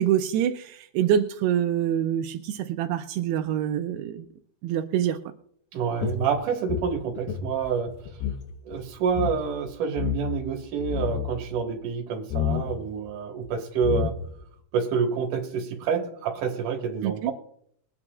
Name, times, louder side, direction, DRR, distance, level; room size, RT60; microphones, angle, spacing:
voice 1, 0.0-4.3 4.6-5.2 17.0-17.3, right 10 dB, 85° right, 2.6 m, -25 dB
voice 2, 5.7-8.0 8.6-14.2 14.7-17.3, right 6 dB, 60° right, 2.9 m, -28 dB
sound 1, 6.0-8.4 8.7-8.8 9.1-9.4 10.0-10.4 10.8-11.3 12.3-12.7 13.5-13.6 13.8-14.4, left 9 dB, 75° left, 2.9 m, -29 dB
22.0 x 9.7 x 2.4 m
omnidirectional pair, 4.8 m